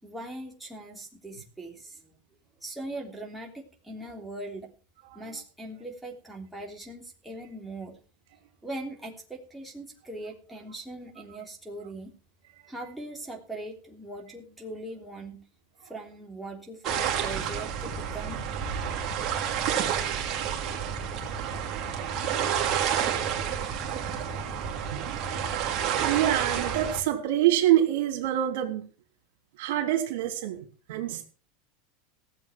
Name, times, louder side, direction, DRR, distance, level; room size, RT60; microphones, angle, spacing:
voice 1, 0.0-2.1 2.6-4.7 5.1-8.0 8.6-12.1 12.7-15.4 15.8-18.4, right 1 dB, 5° right, 3.4 m, -40 dB
voice 2, 5.0-5.4 7.3-7.5 20.5-21.1 21.8-25.1 26.0-28.9 29.6-31.3, right 12 dB, 75° right, 3.1 m, -28 dB
sound 1, 16.8-27.0, right 8 dB, 40° right, 3.0 m, -29 dB
16.5 x 7.8 x 6.0 m
supercardioid pair, 115°, 0 cm